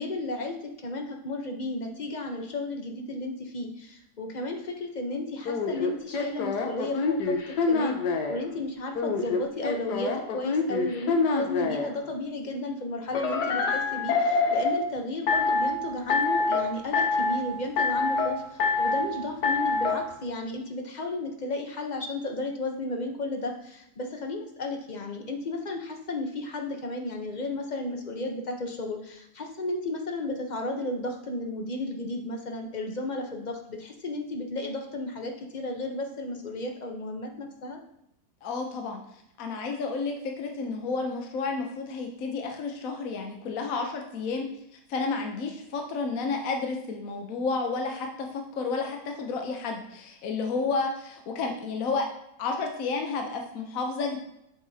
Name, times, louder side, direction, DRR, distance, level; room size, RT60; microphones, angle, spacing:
voice 1, 0.0-7.4 7.7-8.0 8.3-37.8, left 2 dB, 35° left, 2 dB, 0.8 m, -33 dB
sound 1, 5.4-8.4 8.9-11.9 13.1-14.8 15.3-15.7 16.1-16.6 16.9-17.4 17.8-18.3 18.6-19.1 19.4-20.0, left 4 dB, 90° left, 1.5 m, -25 dB
voice 2, 38.4-39.0 39.4-44.5 44.9-52.1 52.4-54.2, left 4 dB, 65° left, 2 dB, 1.2 m, -31 dB
7.9 x 7.6 x 2.8 m, 0.80 s
omnidirectional pair, 1.7 m